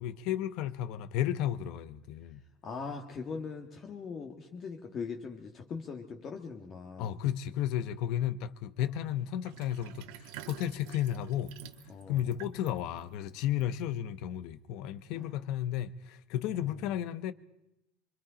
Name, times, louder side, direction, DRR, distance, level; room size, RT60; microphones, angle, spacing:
voice 1, 0.0-2.4 7.0-11.5 12.1-17.3, left 11 dB, 50° left, 0.9 m, -33 dB
voice 2, 2.6-7.1 11.9-12.3 15.1-15.4 16.6-16.7, left 5 dB, 25° left, 1.5 m, -41 dB
Sink (filling or washing), 9.4-14.2, right 11 dB, 70° right, 1.4 m, -50 dB
25.5 x 25.0 x 5.0 m
cardioid pair, 175°, 0 cm